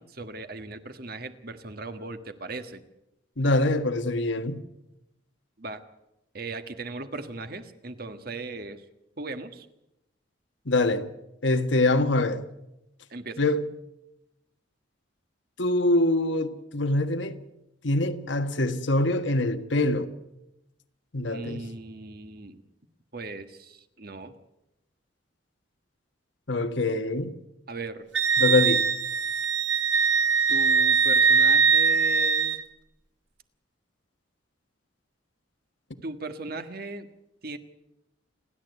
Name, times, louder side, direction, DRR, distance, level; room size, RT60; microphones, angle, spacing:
voice 1, 0.0-2.8 5.6-5.8 6.3-8.8 9.2-9.7 13.1-13.4 21.3-22.6 23.1-24.3 27.7-28.0 30.5-32.6 36.0-37.1 37.4-37.6, right 3 dB, 50° right, 1.6 m, -38 dB
voice 2, 3.4-4.6 10.6-11.0 11.4-12.4 13.4-13.6 15.6-17.4 17.8-20.1 21.1-21.6 26.5-27.3 28.4-28.8, left 2 dB, 75° left, 1.6 m, -24 dB
Wind instrument woodwind instrument, 28.1-32.6, right 5 dB, 70° right, 1.4 m, -21 dB
29.0 x 11.5 x 8.1 m
head